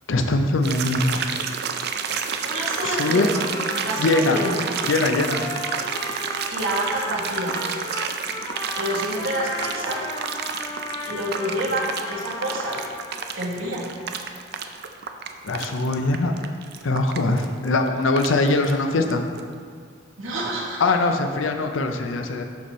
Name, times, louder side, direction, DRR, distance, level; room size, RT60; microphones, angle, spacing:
voice 1, 0.1-1.2 2.8-3.3 4.0-4.4 4.9-5.4 15.4-16.3 16.8-19.2 20.8-22.4, left 2 dB, 75° left, 5 dB, 0.6 m, -22 dB
sound 1, 0.6-19.1 19.4-19.5, right 6 dB, 55° right, 0.4 m, -30 dB
voice 2, 2.4-3.4 3.8-4.5 6.5-7.5 8.8-10.0 11.1-12.8 13.3-13.8 20.2-20.8, right 1 dB, 80° right, -4 dB, 1.5 m, -28 dB
Trumpet, 2.6-13.3, left 1 dB, 20° left, 0.5 m, -35 dB
11.5 x 4.2 x 3.1 m, 2.1 s
head